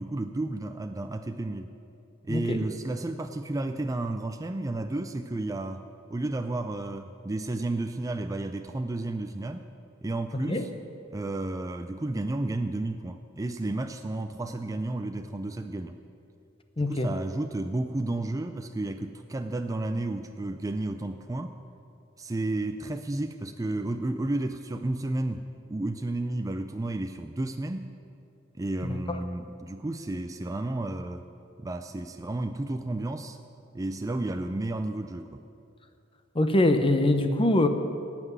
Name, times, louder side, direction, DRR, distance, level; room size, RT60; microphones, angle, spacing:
voice 1, 0.0-1.7 2.2-9.7 10.0-10.7 11.1-16.0 16.8-21.6 22.2-27.9 28.6-31.2 31.6-33.4 33.7-35.4, right 2 dB, 15° right, 7 dB, 0.4 m, -32 dB
voice 2, 16.8-17.1 28.8-29.2 36.3-37.7, left 1 dB, 25° left, 7 dB, 0.8 m, -23 dB
18.0 x 6.0 x 9.3 m, 2.6 s
head